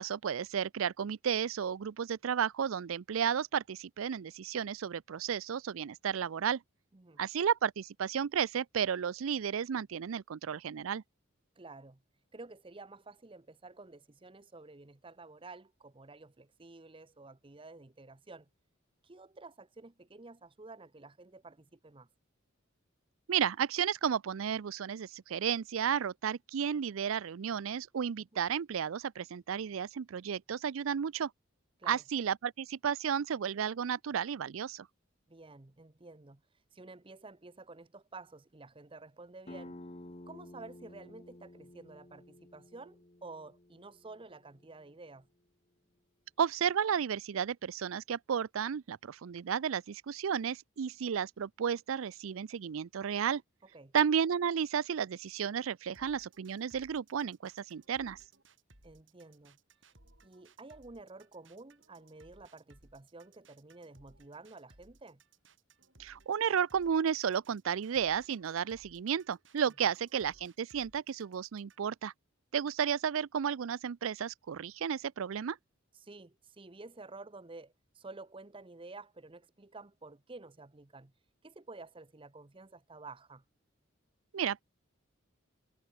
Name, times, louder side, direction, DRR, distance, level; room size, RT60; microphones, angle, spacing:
voice 1, 0.0-6.6 7.2-11.0 23.3-31.3 31.9-34.9 46.4-53.4 53.9-58.2 66.0-72.1 72.5-75.6 84.3-84.6, right 7 dB, 80° right, 0.4 m, -33 dB
voice 2, 11.6-12.0 12.3-18.5 19.0-22.1 28.3-28.4 31.8-32.0 35.3-36.4 36.7-39.8 40.3-45.3 53.7-53.9 58.8-59.6 60.2-65.2 75.9-81.1 81.4-83.4, right 3 dB, 25° right, 0.8 m, -51 dB
sound 1, 39.5-44.9, left 1 dB, 30° left, 1.3 m, -52 dB
sound 2, 55.9-71.9, right 2 dB, 60° right, 7.8 m, -63 dB
head